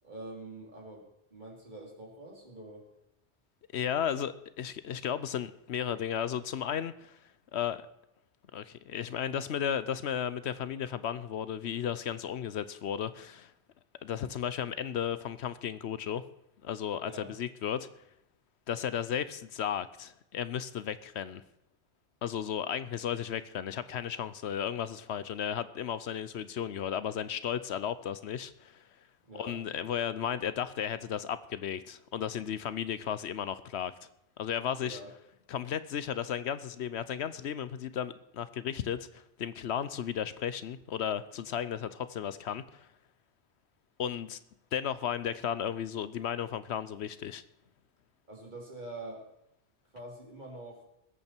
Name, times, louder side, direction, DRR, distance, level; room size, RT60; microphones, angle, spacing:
voice 1, 0.0-2.8 17.0-17.3 29.3-29.6 34.8-35.1 48.3-49.2 49.9-50.8, right 1 dB, 45° right, -1 dB, 3.5 m, -45 dB
voice 2, 3.7-7.2 7.5-7.8 8.5-13.5 14.0-16.2 16.6-17.9 18.7-21.4 22.2-28.8 29.3-33.9 34.4-35.0 35.5-42.9 44.0-44.4 44.7-47.4, left 9 dB, 75° left, 14 dB, 1.0 m, -34 dB
20.5 x 8.7 x 4.5 m, 0.81 s
omnidirectional pair, 1.1 m